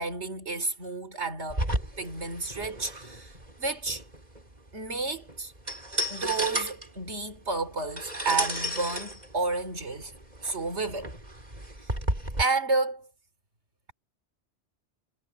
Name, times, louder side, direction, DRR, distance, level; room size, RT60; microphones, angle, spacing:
voice 1, 0.0-1.6 2.0-3.3 3.6-4.0 4.7-5.5 6.1-10.1 10.4-11.1 12.4-13.1, right 3 dB, 75° right, 3.5 m, -31 dB
sound 1, 1.5-12.4, equal, 40° right, 5.2 m, -33 dB
omnidirectional pair, 1.2 m